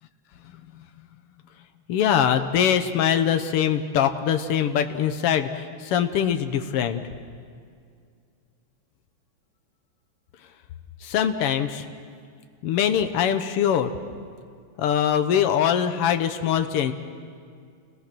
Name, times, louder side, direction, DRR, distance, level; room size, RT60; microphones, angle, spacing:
voice 1, 1.9-7.0 11.0-11.8 12.6-13.9 14.8-16.9, left 9 dB, 75° left, 8 dB, 1.3 m, -23 dB
28.5 x 20.0 x 6.1 m, 2.2 s
omnidirectional pair, 3.7 m